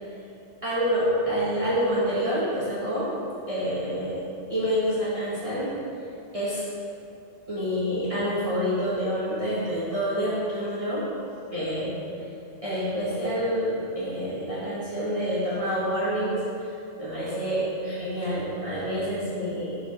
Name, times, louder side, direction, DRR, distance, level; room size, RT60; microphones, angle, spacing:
voice 1, 0.6-3.1 3.5-4.2 4.5-5.7 6.3-6.6 7.5-11.0 11.5-12.0 12.6-16.7 17.0-19.8, equal, 25° right, -11 dB, 1.6 m, -27 dB
6.1 x 5.9 x 4.4 m, 2.7 s
omnidirectional pair, 1.3 m